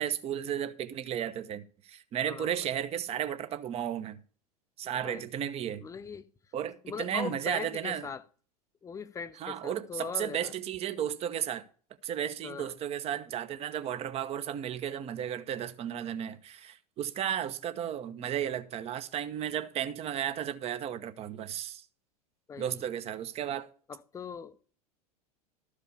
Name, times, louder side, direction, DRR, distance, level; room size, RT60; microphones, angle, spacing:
voice 1, 0.0-4.2 4.8-5.8 6.5-8.1 9.4-11.6 12.0-21.8 22.6-23.7, right 10 dB, 30° right, 0.9 m, -34 dB
voice 2, 5.8-6.3 6.8-8.2 8.8-10.5 12.4-12.7 22.5-22.8 23.9-24.6, left 6 dB, 15° left, 0.6 m, -40 dB
13.0 x 5.1 x 6.8 m
figure-of-eight pair, 85°, 20 cm